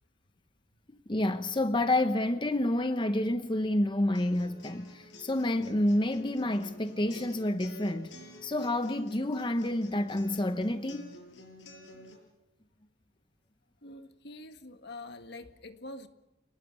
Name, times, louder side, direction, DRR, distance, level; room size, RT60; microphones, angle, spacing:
voice 1, 1.1-8.1 8.4-11.2, left 1 dB, 25° left, 0.9 m, -29 dB
sound 1, 4.1-12.1, left 2 dB, 85° left, 7.0 m, -51 dB
voice 2, 13.8-16.1, left 2 dB, 60° left, 1.9 m, -45 dB
28.5 x 20.0 x 7.1 m
head